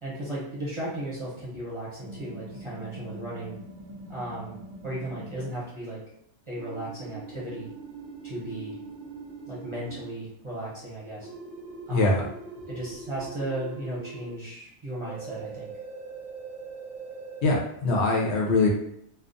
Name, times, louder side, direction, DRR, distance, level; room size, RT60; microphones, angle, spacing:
voice 1, 0.0-3.6 4.1-4.6 4.8-6.0 6.5-7.7 8.2-8.8 9.5-11.3 11.9-12.3 12.7-15.7, right 1 dB, 30° right, -8 dB, 0.6 m, -35 dB
Tech UI Typing, 2.0-5.5 6.6-10.1 11.2-14.4 15.1-17.5, right 4 dB, 75° right, 0.9 m, -42 dB
voice 2, 11.9-12.3 17.4-18.7, left 2 dB, 70° left, -1 dB, 0.8 m, -23 dB
2.3 x 2.3 x 2.5 m, 0.74 s
omnidirectional pair, 1.3 m